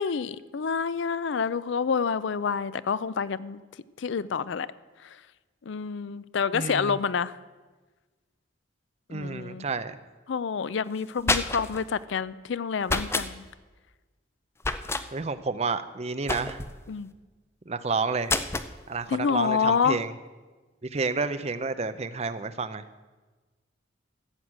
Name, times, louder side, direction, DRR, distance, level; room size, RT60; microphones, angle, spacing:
voice 1, 0.0-3.6 4.0-4.7 5.7-7.4 9.1-9.7 10.3-13.4 16.9-17.1 19.1-20.0, left 6 dB, 70° left, 17 dB, 0.4 m, -28 dB
voice 2, 6.5-7.0 9.1-10.0 15.1-16.6 17.7-18.5 18.9-20.1 20.8-22.8, right 4 dB, 35° right, 12 dB, 0.5 m, -30 dB
sound 1, 11.0-11.8 12.8-13.3 14.6-15.1 16.3-16.8 18.3-18.7, left 3 dB, 15° left, 0.5 m, -28 dB
14.0 x 7.9 x 7.4 m, 1.3 s
head